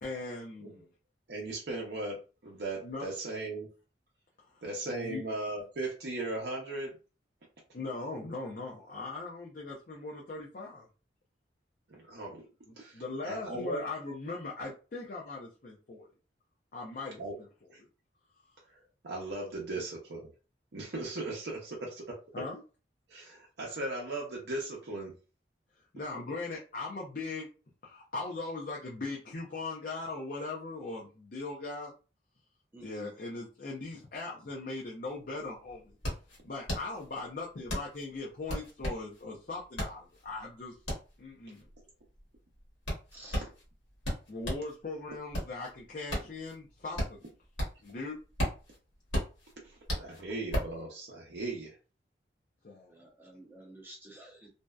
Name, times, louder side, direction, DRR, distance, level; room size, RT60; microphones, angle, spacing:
voice 1, 0.0-0.9 2.8-3.1 4.5-5.2 7.7-10.9 12.9-16.1 16.7-17.5 19.7-19.8 22.3-22.6 25.9-27.5 27.8-31.9 32.8-36.0 36.4-40.7 41.2-41.7 44.3-47.2 47.8-48.1 52.6-52.9, left 3 dB, 50° left, -3 dB, 0.5 m, -39 dB
voice 2, 1.3-2.2 2.4-3.7 4.6-7.0 11.9-12.4 12.8-13.8 17.2-17.4 17.7-17.8 18.7-20.3 20.7-22.4 23.1-25.1 49.6-51.8, right 2 dB, 65° right, -2 dB, 0.6 m, -38 dB
voice 3, 32.7-33.1 43.1-43.5 52.9-54.5, right 1 dB, 10° right, -2 dB, 0.5 m, -50 dB
sound 1, 35.1-35.2 35.4-44.7 45.1-47.9 48.2-50.8, equal, 85° left, 1.2 m, -35 dB
2.6 x 2.1 x 2.3 m, 0.34 s
head